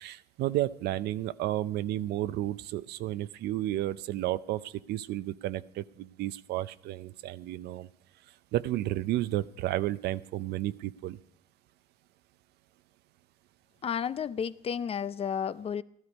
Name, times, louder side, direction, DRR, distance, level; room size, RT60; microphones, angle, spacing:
voice 1, 0.0-7.9 8.5-11.2, right 14 dB, 75° right, 0.5 m, -32 dB
voice 2, 13.8-15.8, left 7 dB, 35° left, 0.5 m, -32 dB
13.5 x 13.0 x 5.3 m
cardioid pair, 110°, 17 cm